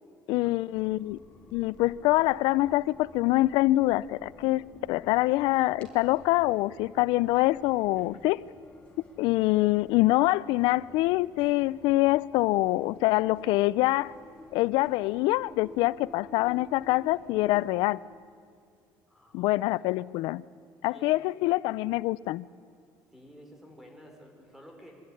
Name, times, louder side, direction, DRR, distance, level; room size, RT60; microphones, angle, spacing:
voice 1, 0.3-1.2 1.5-4.6 4.9-8.4 9.2-14.1 14.5-18.0 19.3-20.4 20.8-22.5, left 18 dB, 85° left, 0.5 m, -25 dB
sound 1, 0.7-17.7, left 2 dB, 15° left, 4.7 m, -52 dB
voice 2, 19.1-19.8 20.9-21.1 23.1-25.0, equal, 5° right, 4.6 m, -52 dB
24.5 x 13.0 x 9.8 m
cardioid pair, 125°, 8 cm